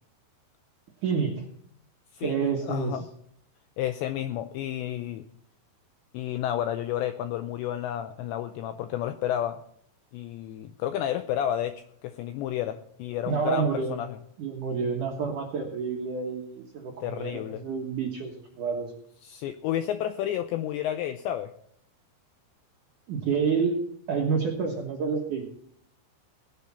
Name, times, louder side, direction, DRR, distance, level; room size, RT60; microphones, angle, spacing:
voice 1, 1.0-1.5 2.2-2.9 13.3-13.9 14.4-18.9 23.1-25.5, right 5 dB, 75° right, 0 dB, 1.9 m, -29 dB
voice 2, 2.1-3.1 3.8-5.3 6.1-9.6 10.1-14.2 17.0-17.6 19.2-21.5, left 11 dB, 85° left, 9 dB, 2.5 m, -31 dB
17.5 x 11.0 x 4.2 m, 0.65 s
omnidirectional pair, 5.8 m